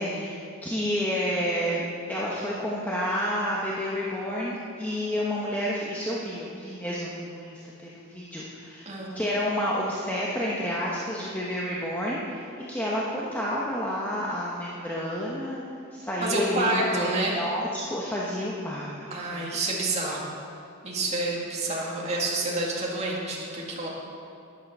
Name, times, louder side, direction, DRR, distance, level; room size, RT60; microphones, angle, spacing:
voice 1, 0.0-8.9 9.1-15.6 15.9-19.1 19.3-19.4 20.0-20.2, equal, 10° left, -5 dB, 1.1 m, -30 dB
voice 2, 16.2-17.4 19.1-20.3 20.8-23.9, right 2 dB, 30° right, -4 dB, 2.2 m, -28 dB
13.0 x 9.8 x 5.4 m, 2.6 s
head